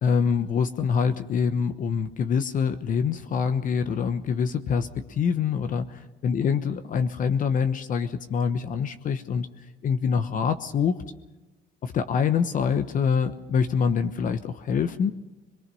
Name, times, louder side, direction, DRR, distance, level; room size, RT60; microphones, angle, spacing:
voice 1, 0.0-9.5 9.8-11.0 11.8-15.1, left 6 dB, 50° left, 9 dB, 1.1 m, -25 dB
23.5 x 22.0 x 5.5 m, 1.1 s
cardioid pair, 110°, 17 cm